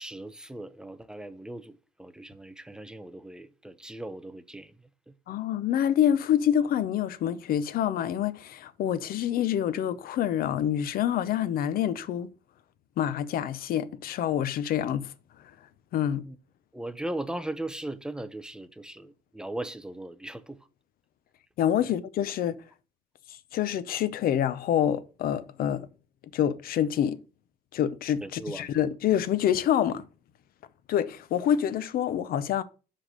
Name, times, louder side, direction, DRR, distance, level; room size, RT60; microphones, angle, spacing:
voice 1, 0.0-4.7 5.1-5.2 16.2-16.4 16.7-20.6 21.8-21.9 28.2-28.7, right 1 dB, 5° right, 0.5 m, -38 dB
voice 2, 5.3-12.3 13.0-15.1 15.9-16.2 21.6-22.6 23.3-25.9 26.3-27.2 27.7-30.0 30.9-32.6, left 10 dB, 70° left, 0.7 m, -27 dB
5.6 x 5.1 x 6.6 m
cardioid pair, 155°, 16 cm